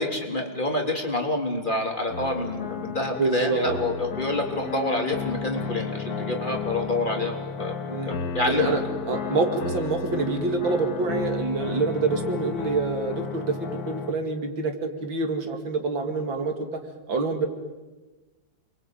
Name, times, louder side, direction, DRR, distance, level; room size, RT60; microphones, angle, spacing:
voice 1, 0.0-8.7, left 2 dB, 25° left, 2 dB, 3.5 m, -27 dB
sound 1, 2.1-14.1, left 5 dB, 55° left, 2.0 m, -33 dB
voice 2, 3.2-3.8 7.9-8.2 8.5-8.8 9.1-16.8 17.1-17.5, right 3 dB, 90° right, 6 dB, 3.1 m, -26 dB
28.5 x 23.0 x 9.1 m, 1.2 s
omnidirectional pair, 2.0 m